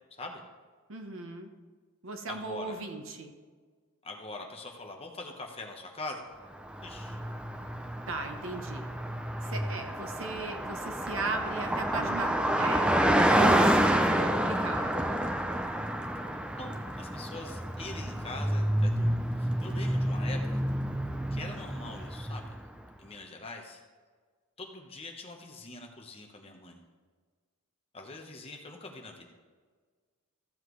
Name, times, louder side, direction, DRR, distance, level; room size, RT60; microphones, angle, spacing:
voice 1, 0.9-1.5 2.0-3.3 8.1-8.9 9.4-15.0, right 3 dB, 65° right, 5 dB, 1.0 m, -37 dB
voice 2, 2.3-2.8 4.0-6.3 6.8-7.2 16.6-20.6 21.3-22.5 23.0-23.8 24.6-26.8 27.9-29.3, left 2 dB, 25° left, 2 dB, 1.1 m, -43 dB
Car passing by, 6.6-22.7, right 1 dB, 5° right, 0.4 m, -29 dB
14.0 x 7.4 x 3.2 m, 1.5 s
head